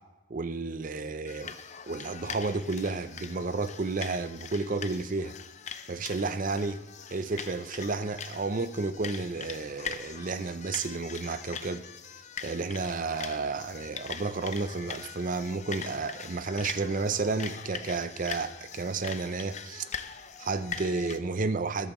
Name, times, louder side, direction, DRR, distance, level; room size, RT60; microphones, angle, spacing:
voice 1, 0.3-1.6 1.9-5.3 5.9-6.8 7.1-11.9 12.4-19.8 20.4-21.9, right 3 dB, 40° right, 0.5 m, -31 dB
sound 1, 1.3-21.2, left 7 dB, 30° left, 0.5 m, -42 dB
20.5 x 8.7 x 3.1 m
head